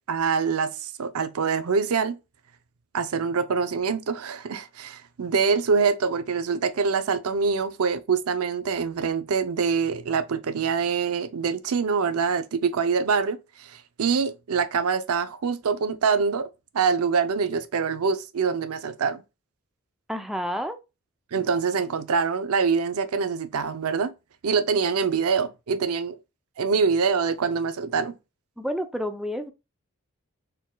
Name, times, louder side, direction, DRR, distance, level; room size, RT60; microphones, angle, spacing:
voice 1, 0.1-2.2 2.9-16.5 16.7-19.2 21.3-24.1 24.4-26.1 26.6-28.1, right 5 dB, 85° right, 0.5 m, -25 dB
voice 2, 20.1-20.8 28.6-29.5, equal, ahead, 0.4 m, -29 dB
4.3 x 3.8 x 2.2 m
head